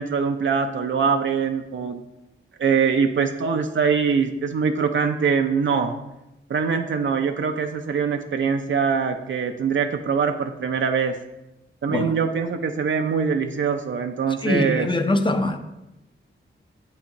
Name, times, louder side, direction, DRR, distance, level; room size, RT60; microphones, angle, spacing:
voice 1, 0.0-2.0 2.6-5.9 6.5-11.1 11.8-14.9, right 6 dB, 65° right, 0.5 m, -23 dB
voice 2, 14.4-15.6, left 2 dB, 25° left, 0.6 m, -23 dB
7.7 x 5.8 x 3.0 m
cardioid pair, 75°, 21 cm